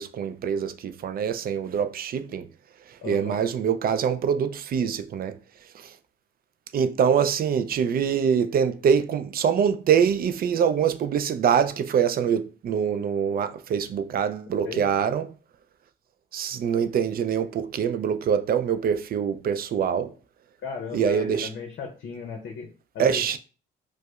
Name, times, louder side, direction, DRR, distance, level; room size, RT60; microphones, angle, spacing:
voice 1, 0.0-2.5 3.0-5.3 5.7-5.9 6.7-15.3 16.3-20.1 20.9-21.5 23.0-23.4, right 7 dB, 50° right, 0.4 m, -24 dB
voice 2, 3.0-3.4 14.6-15.1 20.6-23.4, left 5 dB, 65° left, 0.6 m, -36 dB
4.8 x 2.0 x 2.3 m
cardioid pair, 90°, 20 cm